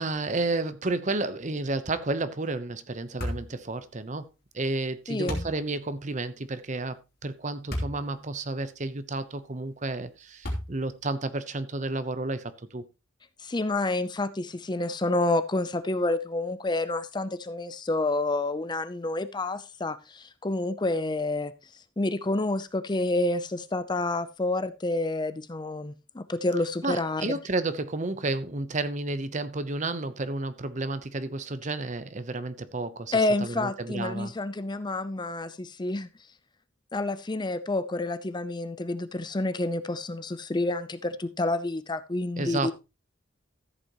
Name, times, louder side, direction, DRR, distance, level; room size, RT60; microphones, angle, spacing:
voice 1, 0.0-4.3 4.5-12.8 26.8-34.3 42.4-42.7, right 2 dB, 40° right, 0.9 m, -31 dB
sound 1, 3.2-3.5 5.3-5.6 7.7-8.0 8.6-8.7 10.4-10.9, equal, 55° left, 3.1 m, -31 dB
voice 2, 5.1-5.5 13.4-21.5 22.0-27.3 33.1-36.1 36.9-42.7, left 2 dB, 25° left, 0.6 m, -29 dB
14.0 x 8.2 x 3.0 m
head